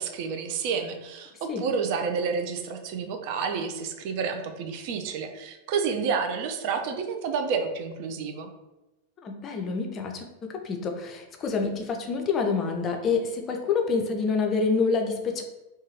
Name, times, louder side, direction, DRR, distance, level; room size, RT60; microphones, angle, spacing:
voice 1, 0.0-8.5, right 5 dB, 45° right, 5 dB, 0.3 m, -30 dB
voice 2, 9.2-15.4, left 4 dB, 25° left, 3 dB, 0.4 m, -27 dB
2.6 x 2.3 x 2.9 m, 0.99 s
figure-of-eight pair, 90°, 0 cm